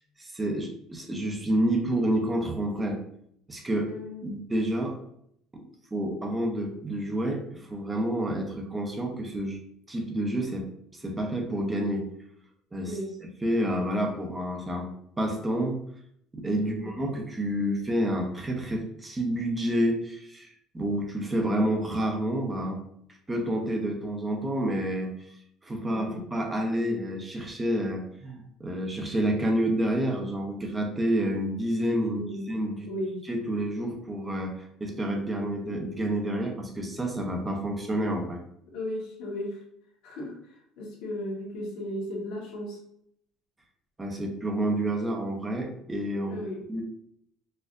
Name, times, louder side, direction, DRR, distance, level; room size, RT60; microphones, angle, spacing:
voice 1, 0.2-3.0 3.5-3.9 4.2-5.0 5.5-5.6 5.9-9.6 9.9-10.7 10.9-12.1 12.7-13.0 13.4-14.9 15.2-15.8 16.3-22.8 23.3-25.4 25.6-32.2 32.5-32.9 33.3-38.4 44.0-46.4 46.7-46.8, right 1 dB, 15° right, 2 dB, 0.6 m, -29 dB
voice 2, 3.8-4.4 12.8-13.1 16.6-16.9 25.9-26.2 32.1-32.5 32.8-33.2 38.7-39.6 40.0-42.8 46.3-46.6, left 1 dB, 70° left, -2 dB, 1.1 m, -35 dB
4.2 x 2.5 x 2.4 m, 0.70 s
cardioid pair, 150°, 0 cm